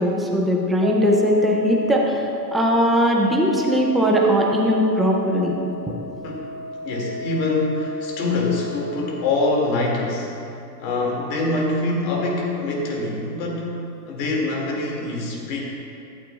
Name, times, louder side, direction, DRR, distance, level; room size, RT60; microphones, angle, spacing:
voice 1, 0.0-2.2 2.5-5.5, equal, ahead, -1 dB, 0.4 m, -19 dB
sound 1, 0.8-9.4, left 1 dB, 60° right, 1.4 m, -32 dB
voice 2, 6.8-10.3 10.8-15.6, left 2 dB, 55° left, -2 dB, 2.3 m, -24 dB
13.5 x 9.0 x 2.4 m, 2.7 s
supercardioid pair, 125°, 46 cm